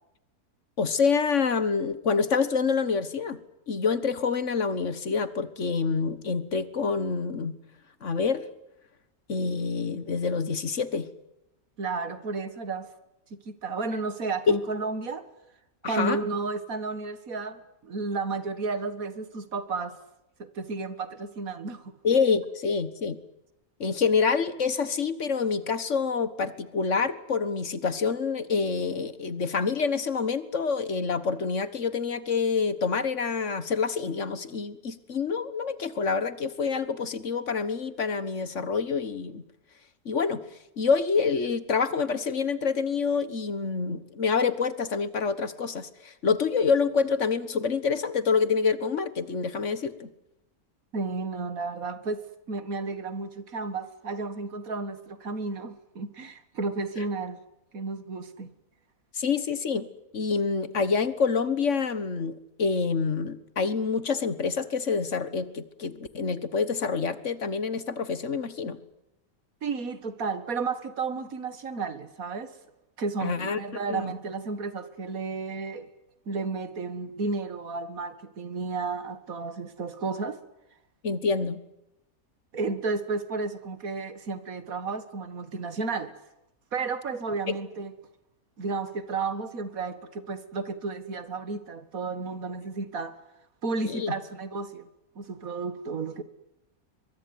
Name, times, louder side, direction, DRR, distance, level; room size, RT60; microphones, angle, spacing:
voice 1, 0.8-3.4 3.7-7.6 8.0-8.4 9.3-11.1 14.5-14.6 15.8-16.2 22.0-23.2 23.8-39.4 40.0-40.4 40.8-50.1 59.1-59.9 60.1-68.8 73.2-73.6 73.9-74.1 81.0-81.6 87.5-87.6 93.8-94.1, left 5 dB, 55° left, 1.7 m, -27 dB
voice 2, 11.8-12.9 13.5-15.3 15.8-20.0 20.4-21.9 50.9-57.4 57.7-58.5 69.6-72.6 73.0-75.9 76.3-80.4 82.5-86.2 86.7-87.9 88.6-93.2 93.6-94.9 95.2-96.2, right 4 dB, 70° right, 2.1 m, -32 dB
23.0 x 23.0 x 9.6 m
omnidirectional pair, 1.6 m